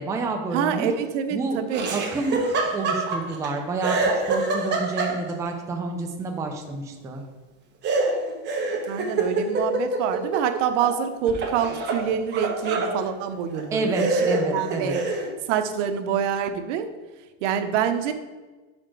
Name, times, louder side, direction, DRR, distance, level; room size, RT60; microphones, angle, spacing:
voice 1, 0.0-1.0 1.3-1.6 1.9-2.4 2.7-4.0 4.3-7.2 13.7-15.0, right 3 dB, 10° right, 3 dB, 0.4 m, -29 dB
voice 2, 0.5-1.9 8.9-15.0 15.5-16.9 17.4-18.1, right 8 dB, 90° right, 8 dB, 0.8 m, -26 dB
Laughter, 1.7-3.5 3.8-5.5 7.8-11.0 11.3-13.0 13.5-13.6 13.9-15.3, right 3 dB, 30° right, 1.0 m, -26 dB
5.9 x 4.3 x 4.4 m, 1.3 s
cardioid pair, 155°, 35 cm